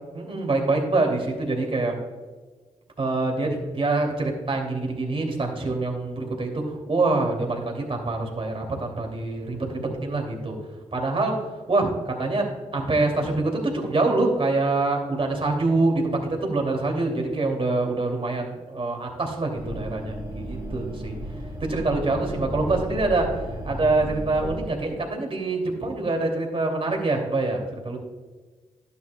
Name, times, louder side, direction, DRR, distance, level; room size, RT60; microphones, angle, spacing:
voice 1, 0.1-1.9 3.0-10.5 10.9-11.4 11.7-21.2 21.6-23.3 23.6-28.0, right 2 dB, 45° right, 1 dB, 2.6 m, -25 dB
sound 1, 19.5-24.7, equal, 20° right, 2.9 m, -34 dB
12.0 x 9.5 x 2.3 m, 1.4 s
supercardioid pair, 45°, 13 cm